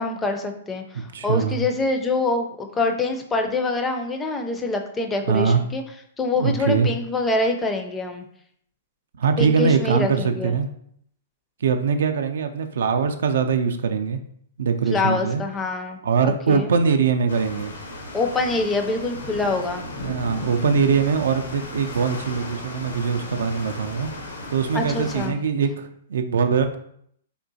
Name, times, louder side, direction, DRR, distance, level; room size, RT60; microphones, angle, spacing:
voice 1, 0.0-5.8 6.2-8.3 9.4-10.6 14.9-16.7 18.1-19.8 24.7-25.4, left 3 dB, 15° left, 5 dB, 0.4 m, -25 dB
voice 2, 1.1-1.6 5.3-5.6 6.4-6.9 9.2-10.7 11.6-14.2 14.6-15.4 16.0-17.7 20.0-24.1 24.5-26.8, right 6 dB, 70° right, 7 dB, 0.3 m, -22 dB
sound 1, 17.3-25.3, left 1 dB, 80° left, 0.7 m, -35 dB
3.6 x 2.4 x 2.6 m, 0.67 s
hypercardioid pair, 125°, 0 cm